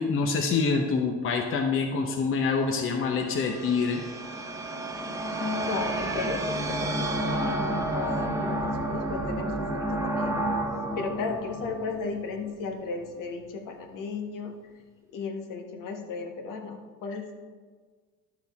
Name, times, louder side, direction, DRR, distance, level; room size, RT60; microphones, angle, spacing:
voice 1, 0.0-4.0, left 4 dB, 35° left, 2 dB, 0.9 m, -26 dB
sound 1, 2.4-12.7, right 1 dB, 10° right, 0.9 m, -31 dB
voice 2, 5.4-10.5 10.9-14.5 15.1-17.3, left 4 dB, 60° left, 3 dB, 1.4 m, -35 dB
11.5 x 6.6 x 3.6 m, 1.5 s
cardioid pair, 120°, 35 cm